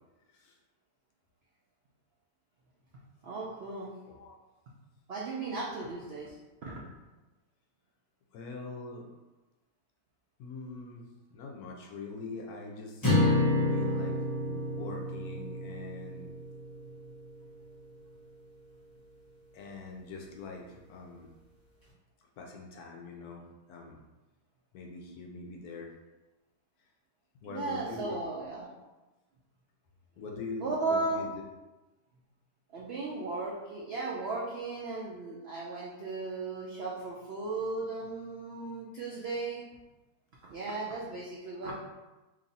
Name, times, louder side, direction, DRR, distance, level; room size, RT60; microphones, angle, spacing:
voice 1, 3.2-3.9 5.1-6.4 6.6-6.8 27.5-28.7 30.6-31.2 32.7-39.6 40.5-41.7, right 3 dB, 75° right, -4 dB, 0.5 m, -36 dB
voice 2, 8.3-9.1 10.4-11.0 11.3-13.1 13.5-14.2 14.7-16.3 19.5-21.3 22.4-23.4 23.7-24.0 24.7-25.9 27.4-28.3 28.6-28.7 30.2-31.4, left 4 dB, 70° left, 1 dB, 1.0 m, -43 dB
sound 1, 13.0-17.4, left 2 dB, 15° left, 0.7 m, -29 dB
3.0 x 2.5 x 4.0 m, 1.1 s
omnidirectional pair, 1.7 m